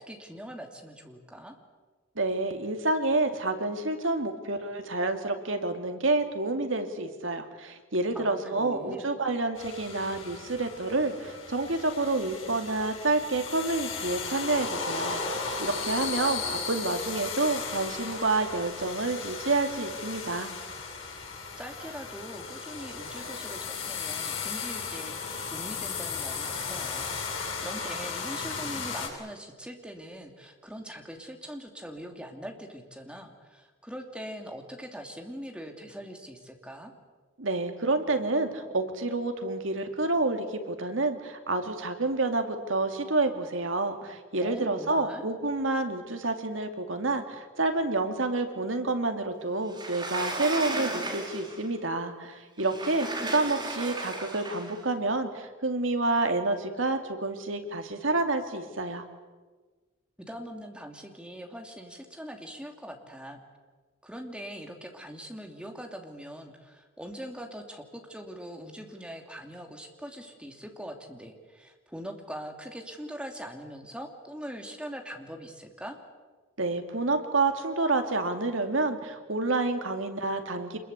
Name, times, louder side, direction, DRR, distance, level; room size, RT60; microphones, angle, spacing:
voice 1, 0.0-1.5 8.1-9.1 21.6-25.2 25.5-36.9 44.4-45.3 60.3-63.4 64.0-76.0, equal, 5° right, 3 dB, 2.8 m, -42 dB
voice 2, 2.2-20.5 37.4-59.0 76.6-80.8, right 2 dB, 75° right, 6 dB, 2.6 m, -29 dB
sound 1, 9.6-29.1, left 5 dB, 85° left, 7.2 m, -36 dB
Sliding door, 49.7-51.7 52.6-54.8, right 2 dB, 25° right, 4.0 m, -35 dB
26.5 x 21.5 x 8.3 m, 1.4 s
head